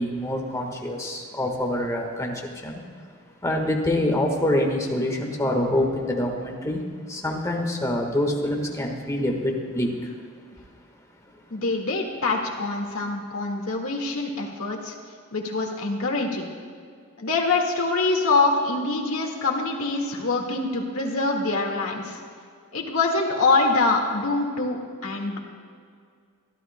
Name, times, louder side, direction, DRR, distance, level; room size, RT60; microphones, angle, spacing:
voice 1, 0.0-3.1 3.4-10.1 10.6-10.7 11.3-11.4, left 1 dB, 15° left, 1 dB, 1.4 m, -26 dB
voice 2, 11.5-14.9 15.3-16.5 17.2-22.2 22.7-25.4, left 3 dB, 65° left, 1 dB, 1.8 m, -24 dB
24.5 x 12.0 x 2.2 m, 2.2 s
head